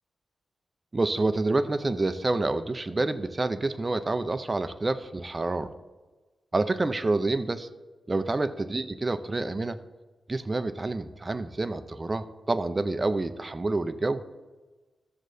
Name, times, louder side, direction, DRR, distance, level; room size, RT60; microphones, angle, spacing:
voice 1, 0.9-5.7 6.5-7.7 8.1-9.8 10.3-14.2, right 2 dB, 30° right, 11 dB, 0.6 m, -28 dB
13.5 x 7.5 x 2.7 m, 1.2 s
cardioid pair, 65°, 0 cm